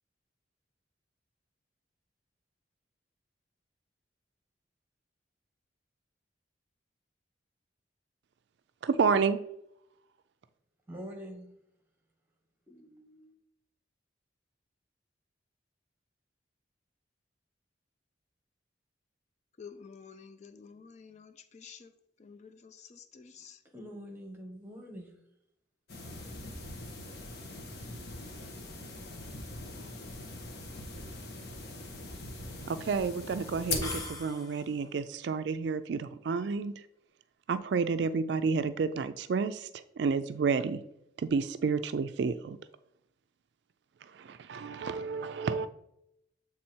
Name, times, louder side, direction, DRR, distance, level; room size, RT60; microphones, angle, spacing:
voice 1, 8.8-9.4 32.7-36.9 37.5-40.8 41.2-42.6 44.0-45.7, right 5 dB, 65° right, 0.3 m, -30 dB
voice 2, 10.9-11.6 12.7-13.4 23.6-25.2, equal, 10° right, 1.4 m, -45 dB
voice 3, 19.6-21.9 22.2-23.6, left 6 dB, 40° left, 0.4 m, -50 dB
sound 1, 25.9-34.1, left 2 dB, 55° left, 1.3 m, -41 dB
sound 2, 33.8-34.9, left 2 dB, 20° left, 1.0 m, -41 dB
7.6 x 3.6 x 4.4 m
head